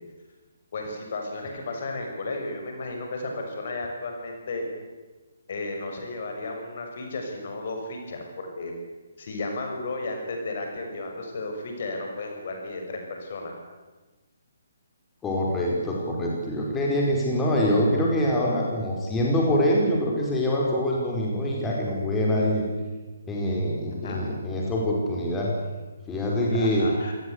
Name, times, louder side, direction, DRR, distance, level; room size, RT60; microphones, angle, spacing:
voice 1, 0.7-4.7 5.5-8.7 9.2-13.5 24.0-24.2 26.5-27.1, left 2 dB, 45° left, 2 dB, 6.2 m, -33 dB
voice 2, 15.2-22.7 23.3-25.5 26.1-26.9, equal, 10° left, -3 dB, 5.1 m, -24 dB
27.5 x 18.0 x 8.3 m, 1.2 s
figure-of-eight pair, 135°, 0 cm